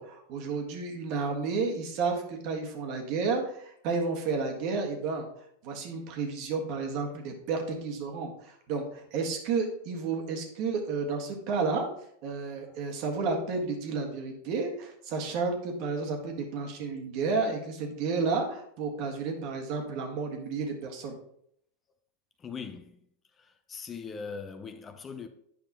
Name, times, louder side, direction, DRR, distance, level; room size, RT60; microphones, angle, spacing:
voice 1, 0.0-5.3 5.6-11.9 12.2-21.2, right 4 dB, 55° right, 1.5 m, -31 dB
voice 2, 22.4-23.0 23.7-25.3, left 5 dB, 25° left, 0.6 m, -40 dB
8.6 x 5.3 x 2.9 m
hypercardioid pair, 100°, 0 cm